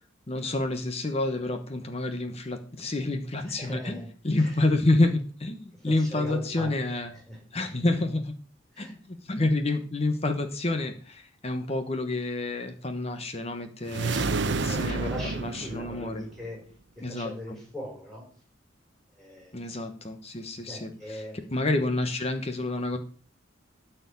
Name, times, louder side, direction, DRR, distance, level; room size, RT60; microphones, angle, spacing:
voice 1, 0.3-7.1 7.5-8.3 8.8-8.9 9.3-15.1 15.4-16.2 17.0-17.3 19.5-21.2 21.5-23.0, left 2 dB, 30° left, 6 dB, 1.0 m, -28 dB
voice 2, 3.4-4.1 4.3-4.6 5.7-6.8 7.1-7.4 8.7-8.9 14.0-16.6 17.0-18.2 19.1-19.8 20.7-21.6, equal, ahead, -3 dB, 5.4 m, -40 dB
sound 1, 13.9-16.5, right 3 dB, 60° right, 0.7 m, -29 dB
13.0 x 4.5 x 8.4 m, 0.43 s
head